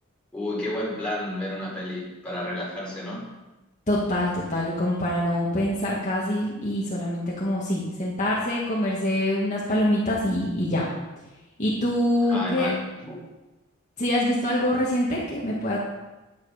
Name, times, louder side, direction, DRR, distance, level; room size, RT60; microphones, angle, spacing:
voice 1, 0.3-3.3 12.3-13.2, left 1 dB, 5° left, -7 dB, 4.4 m, -31 dB
voice 2, 3.9-10.9 11.6-12.7 14.0-15.8, left 1 dB, 35° left, -5 dB, 1.9 m, -25 dB
10.5 x 9.6 x 5.1 m, 1.1 s
head